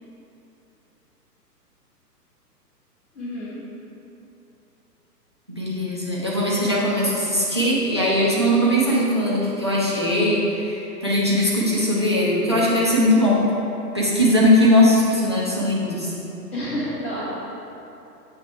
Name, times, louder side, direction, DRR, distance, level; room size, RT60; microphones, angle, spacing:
voice 1, 3.1-3.6 14.3-14.5 16.5-17.3, left 1 dB, 40° left, -8 dB, 1.4 m, -29 dB
voice 2, 5.5-13.5 13.9-16.1, left 1 dB, 20° right, -6 dB, 0.4 m, -20 dB
8.3 x 3.3 x 4.5 m, 2.9 s
figure-of-eight pair, 120°, 49 cm